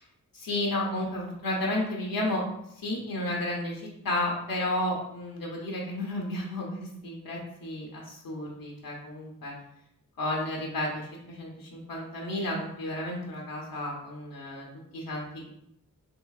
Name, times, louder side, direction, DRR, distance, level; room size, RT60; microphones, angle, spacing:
voice 1, 0.3-2.4 2.8-9.5 10.2-14.7 14.9-15.5, left 1 dB, 85° left, -2 dB, 0.7 m, -32 dB
3.7 x 2.7 x 2.3 m, 0.76 s
wide cardioid pair, 85°, 34 cm